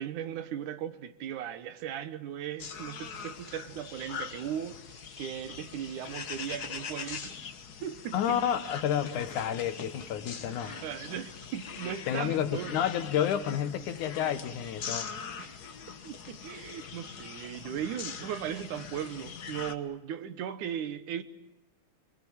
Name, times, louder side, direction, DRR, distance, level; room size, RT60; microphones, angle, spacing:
voice 1, 0.0-4.8 5.2-7.4 7.8-8.4 10.7-12.8 15.4-15.5 16.0-21.2, right 9 dB, 85° right, 2.7 m, -37 dB
sound 1, 2.6-19.7, left 6 dB, 55° left, 1.1 m, -42 dB
voice 2, 8.1-10.8 12.1-15.1, left 9 dB, 85° left, 2.8 m, -30 dB
25.0 x 23.5 x 8.8 m
omnidirectional pair, 3.4 m